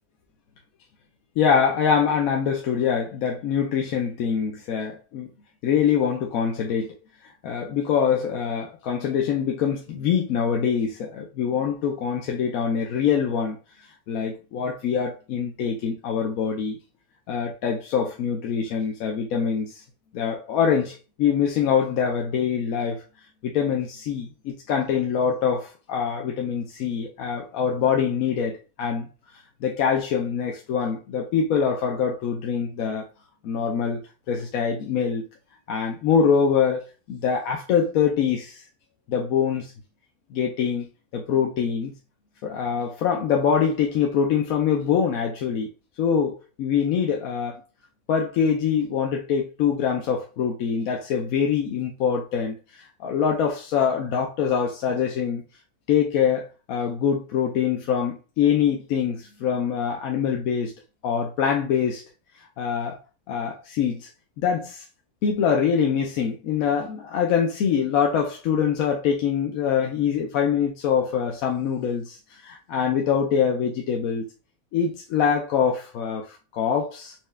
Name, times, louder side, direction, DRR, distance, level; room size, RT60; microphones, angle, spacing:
voice 1, 1.4-5.3 5.6-6.9 7.4-13.6 14.1-16.8 17.3-19.8 20.1-23.0 23.4-29.1 29.6-33.1 33.4-34.0 34.3-35.2 35.7-38.6 39.1-39.7 40.3-41.9 42.4-45.7 46.0-47.6 48.1-55.4 55.9-60.7 61.0-62.0 62.6-63.0 63.3-64.1 64.4-64.8 65.2-74.2 74.7-77.1, left 7 dB, 75° left, 1.0 m, -24 dB
4.3 x 2.3 x 3.3 m
omnidirectional pair, 1.6 m